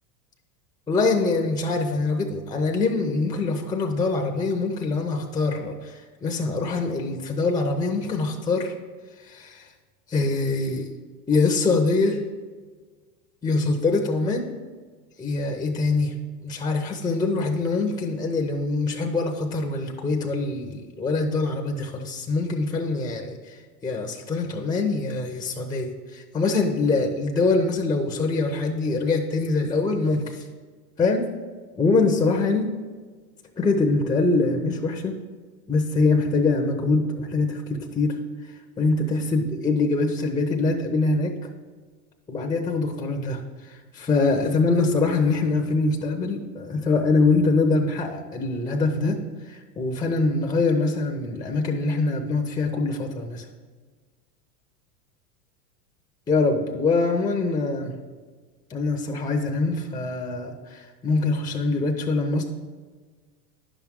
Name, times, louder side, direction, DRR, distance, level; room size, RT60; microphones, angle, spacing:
voice 1, 0.9-8.7 9.2-9.7 10.1-10.9 11.3-12.2 13.4-14.6 15.2-16.1 16.4-30.5 31.0-31.3 31.8-32.7 33.6-35.2 35.7-38.2 38.4-41.3 42.3-53.5 56.3-57.9 58.7-62.4, left 3 dB, 10° left, 3 dB, 0.6 m, -24 dB
10.0 x 6.1 x 3.6 m, 1.5 s
hypercardioid pair, 105°, 48 cm